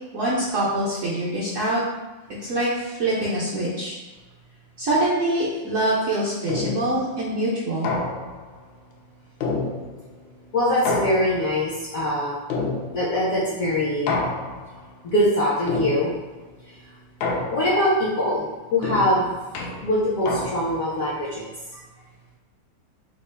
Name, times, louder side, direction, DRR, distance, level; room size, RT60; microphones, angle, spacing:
voice 1, 0.1-1.8 2.4-4.0 4.8-7.9, right 1 dB, 65° right, -8 dB, 0.8 m, -24 dB
sound 1, 6.5-7.0 7.8-8.5 9.4-10.2 10.8-11.6 12.5-13.2 14.1-14.8 15.7-16.3 17.2-17.9 18.8-20.9, left 3 dB, 80° left, 1.3 m, -28 dB
voice 2, 10.5-12.4 12.9-14.1 15.0-16.1 17.5-19.4 19.8-21.8, left 1 dB, 65° left, -6 dB, 0.8 m, -23 dB
3.7 x 2.4 x 3.2 m, 1.2 s
omnidirectional pair, 2.1 m